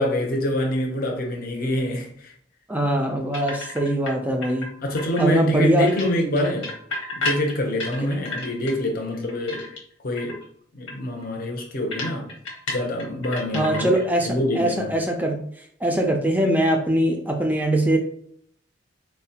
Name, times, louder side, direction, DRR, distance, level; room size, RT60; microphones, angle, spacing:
voice 1, 0.0-2.3 4.8-6.7 7.1-9.7 10.0-10.4 10.7-12.3 12.7-13.9 14.2-14.9, left 1 dB, 50° left, 0.6 m, -25 dB
voice 2, 2.7-4.7 5.2-5.9 13.5-15.4 15.8-18.0, right 1 dB, 10° right, 0.3 m, -22 dB
sound 1, 3.3-4.1 4.4-5.5 5.9-8.8 9.1-9.9 10.2-10.4 10.9-11.0 11.2-11.3 11.9-14.1 14.4-14.7, left 2 dB, 85° left, 1.1 m, -32 dB
4.1 x 2.1 x 2.8 m
head